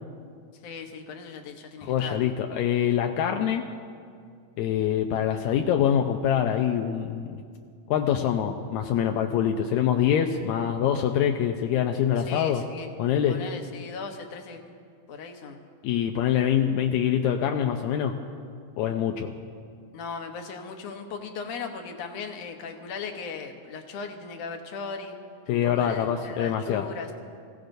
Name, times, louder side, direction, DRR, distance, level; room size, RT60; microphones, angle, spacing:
voice 1, 0.6-2.2 12.3-12.9 13.3-14.6 15.1-15.6 19.9-25.2 25.5-27.1, left 5 dB, 65° left, 4 dB, 1.9 m, -38 dB
voice 2, 1.8-3.6 4.6-7.4 7.9-12.6 13.0-13.4 15.8-18.1 18.8-19.3 25.5-26.9, left 9 dB, 80° left, 4 dB, 1.7 m, -25 dB
26.0 x 16.0 x 2.7 m, 2.2 s
omnidirectional pair, 3.9 m